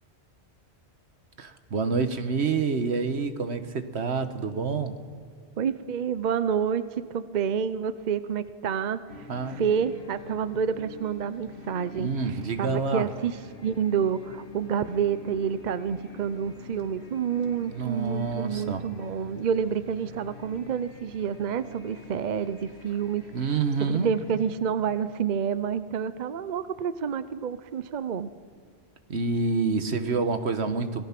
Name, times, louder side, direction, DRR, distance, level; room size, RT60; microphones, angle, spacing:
voice 1, 1.4-5.0 9.3-9.6 12.0-13.1 17.7-18.8 23.3-24.1 29.1-31.0, right 4 dB, 75° right, 9 dB, 1.5 m, -27 dB
voice 2, 5.6-13.4 13.6-23.2 23.8-28.3, right 7 dB, 50° right, 13 dB, 0.7 m, -29 dB
sound 1, 9.1-24.5, left 3 dB, 70° left, 2.3 m, -46 dB
26.5 x 18.0 x 5.9 m, 2.1 s
omnidirectional pair, 1.1 m